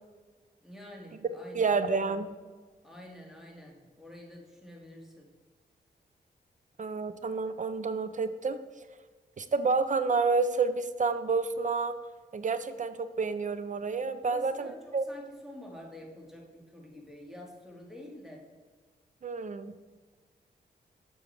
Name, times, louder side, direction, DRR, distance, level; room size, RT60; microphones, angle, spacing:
voice 1, 0.6-1.7 2.8-5.3 14.2-18.5, left 1 dB, ahead, 0 dB, 2.2 m, -48 dB
voice 2, 1.5-2.3 6.8-8.6 9.4-11.9 12.3-14.7 14.9-15.1 19.2-19.8, right 4 dB, 45° right, 11 dB, 0.6 m, -29 dB
7.4 x 6.3 x 4.8 m, 1.4 s
cardioid pair, 70°, 17 cm